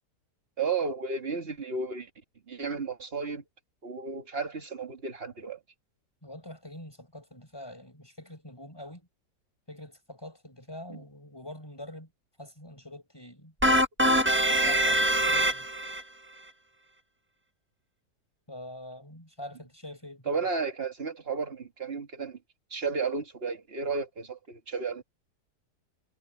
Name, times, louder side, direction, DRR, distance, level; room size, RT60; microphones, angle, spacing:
voice 1, 0.6-2.1 2.5-3.4 3.8-5.6 10.9-11.0 20.3-22.4 22.7-25.0, right 4 dB, 35° right, 2.1 m, -33 dB
voice 2, 6.2-9.1 9.7-12.1 12.4-13.5 14.5-15.7 18.5-20.5, left 1 dB, 15° left, 7.7 m, -45 dB
sound 1, 13.6-16.0, right 1 dB, 10° right, 0.9 m, -23 dB
omnidirectional pair, 1.7 m